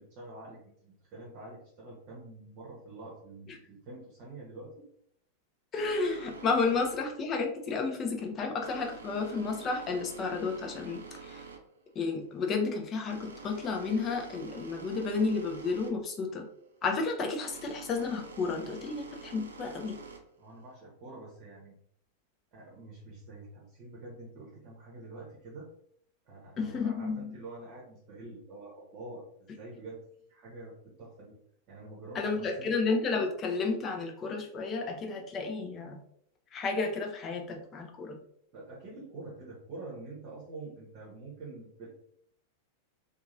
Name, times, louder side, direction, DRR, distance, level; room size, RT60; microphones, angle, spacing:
voice 1, 0.0-4.9 20.4-21.8 22.5-25.7 26.3-30.0 30.3-30.7 31.0-31.3 31.7-32.7 38.5-41.9, right 2 dB, 40° right, -4 dB, 0.8 m, -46 dB
voice 2, 5.7-11.4 12.0-16.4 16.8-20.0 26.6-27.3 32.1-36.0 36.5-38.2, left 4 dB, 30° left, 2 dB, 0.6 m, -32 dB
sound 1, 5.7-20.8, right 5 dB, 70° right, 0.5 m, -48 dB
2.8 x 2.4 x 2.5 m, 0.69 s
figure-of-eight pair, 90°, 0 cm